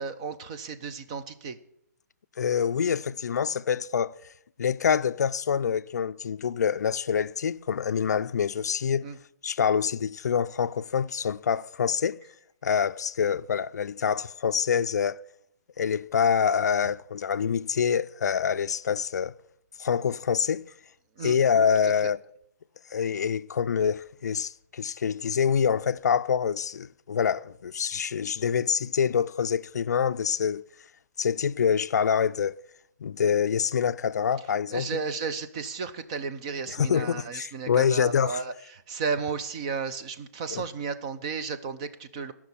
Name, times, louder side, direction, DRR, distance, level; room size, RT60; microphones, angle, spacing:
voice 1, 0.0-1.6 9.0-9.2 21.2-21.4 21.8-22.1 34.7-42.3, right 5 dB, 25° right, 0.7 m, -33 dB
voice 2, 2.4-4.1 4.6-9.1 9.4-12.2 12.6-15.2 15.8-19.3 19.8-20.7 21.2-22.2 22.9-30.6 31.2-32.5 33.0-34.9 36.8-38.4 40.5-40.6, left 7 dB, 70° left, 0.4 m, -26 dB
14.5 x 6.0 x 8.4 m
hypercardioid pair, 170°, 9 cm